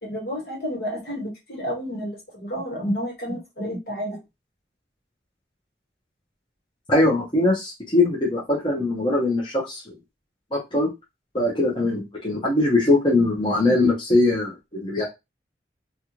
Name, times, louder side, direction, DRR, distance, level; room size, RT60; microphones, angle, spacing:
voice 1, 0.0-4.2, equal, 60° left, 1.5 m, -30 dB
voice 2, 6.9-9.9 10.5-10.9 11.3-15.0, left 2 dB, 25° left, 0.9 m, -21 dB
3.3 x 2.4 x 2.9 m
head